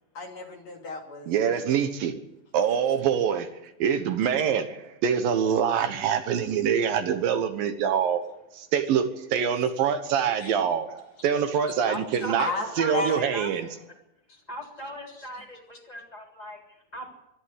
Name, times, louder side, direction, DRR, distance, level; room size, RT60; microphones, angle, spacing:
voice 1, 0.2-1.6 10.4-10.5 12.4-13.2, left 3 dB, 50° left, 2 dB, 3.6 m, -33 dB
voice 2, 1.3-2.1 2.5-3.5 3.8-8.2 8.5-12.5 12.8-13.7, right 8 dB, 75° right, 8 dB, 3.0 m, -25 dB
voice 3, 11.9-13.5 14.5-17.1, equal, 10° left, 0 dB, 4.1 m, -38 dB
23.0 x 12.5 x 9.8 m, 0.86 s
omnidirectional pair, 4.2 m